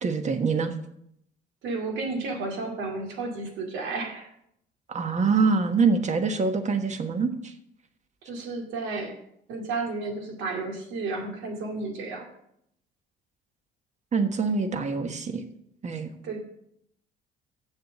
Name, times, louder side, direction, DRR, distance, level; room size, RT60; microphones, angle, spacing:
voice 1, 0.0-0.7 4.9-7.5 14.1-15.4 15.8-16.1, right 4 dB, 40° right, 7 dB, 1.4 m, -25 dB
voice 2, 1.6-4.3 8.2-9.2 9.5-12.3 16.2-16.4, right 3 dB, 80° right, 3 dB, 2.3 m, -32 dB
7.5 x 7.3 x 7.3 m, 0.74 s
cardioid pair, 95°, 19 cm